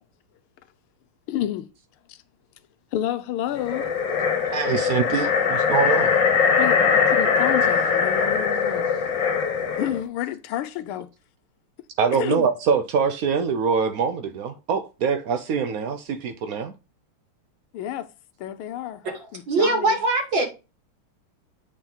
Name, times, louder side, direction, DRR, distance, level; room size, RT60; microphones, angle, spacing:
voice 1, 1.3-1.7 2.1-2.2 2.9-3.9 5.1-5.2 6.6-8.9 9.7-11.1 12.1-12.5 17.7-18.1 18.4-19.0 19.3-20.0, left 11 dB, 80° left, 1.5 m, -30 dB
sound 1, 3.6-10.0, left 6 dB, 60° left, 1.7 m, -21 dB
voice 2, 4.4-6.1 12.0-16.7, right 6 dB, 80° right, 0.8 m, -24 dB
voice 3, 19.0-20.4, right 3 dB, 60° right, 3.1 m, -23 dB
8.9 x 4.4 x 3.9 m
omnidirectional pair, 2.4 m